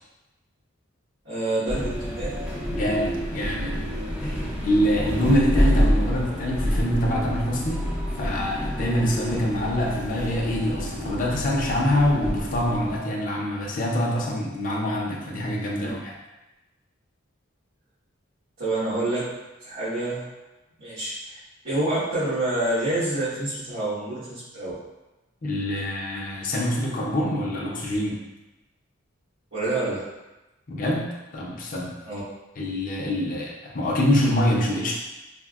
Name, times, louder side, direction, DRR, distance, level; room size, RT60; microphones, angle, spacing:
voice 1, 1.2-2.3 15.8-15.9 18.6-19.3 19.6-20.2 20.8-21.4 21.6-24.7 29.5-30.0 32.0-32.2, right 2 dB, 80° right, -15 dB, 1.2 m, -27 dB
sound 1, 1.7-13.0, equal, 10° right, 0.4 m, -27 dB
voice 2, 2.7-3.8 4.2-7.9 8.2-16.1 25.4-28.2 30.7-31.9 32.6-34.9, left 1 dB, 40° left, -3 dB, 0.5 m, -25 dB
4.2 x 2.0 x 2.3 m, 1.0 s
head